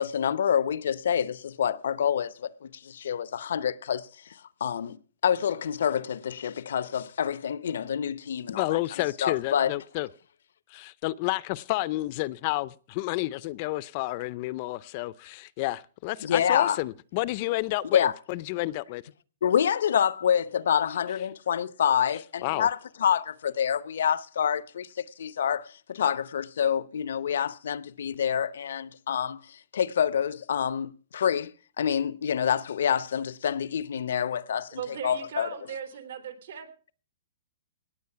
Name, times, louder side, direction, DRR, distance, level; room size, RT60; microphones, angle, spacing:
voice 1, 0.0-8.8 9.2-9.7 16.2-16.8 17.9-18.1 19.4-35.5, left 8 dB, 80° left, 0.7 m, -27 dB
voice 2, 8.5-10.1 10.7-19.0 22.4-22.7, left 19 dB, 40° left, 0.5 m, -30 dB
voice 3, 34.7-36.7, right 8 dB, 70° right, 3.3 m, -38 dB
18.0 x 7.9 x 5.8 m
hypercardioid pair, 155°, 0 cm